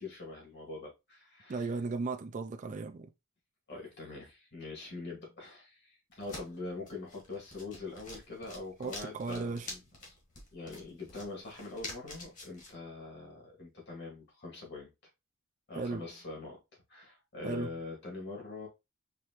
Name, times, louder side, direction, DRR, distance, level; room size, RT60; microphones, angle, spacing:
voice 1, 0.0-1.7 3.7-9.8 10.5-14.9 15.7-16.6 16.9-18.7, left 3 dB, 55° left, 2.3 m, -43 dB
voice 2, 1.5-3.1 8.8-9.7 15.7-16.0 17.4-17.7, right 3 dB, 35° right, 0.4 m, -36 dB
sound 1, 6.1-12.7, left 2 dB, 35° left, 1.5 m, -48 dB
4.8 x 3.0 x 2.9 m
head